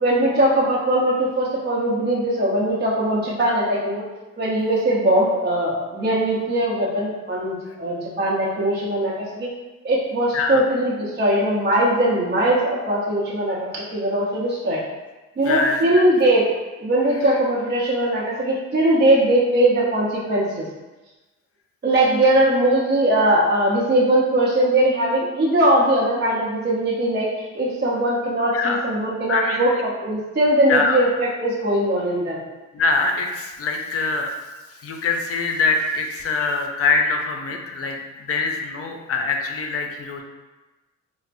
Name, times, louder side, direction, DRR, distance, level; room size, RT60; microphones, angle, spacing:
voice 1, 0.0-4.0 4.4-9.5 9.8-14.8 15.4-16.5 16.8-20.7 21.8-32.4, right 1 dB, 35° right, -6 dB, 0.8 m, -20 dB
voice 2, 15.5-16.0 28.5-28.8 29.3-29.8 30.7-31.0 32.7-34.3 34.8-38.0 38.3-40.2, left 4 dB, 50° left, 3 dB, 0.5 m, -23 dB
4.3 x 2.1 x 2.5 m, 1.1 s
cardioid pair, 90°, 30 cm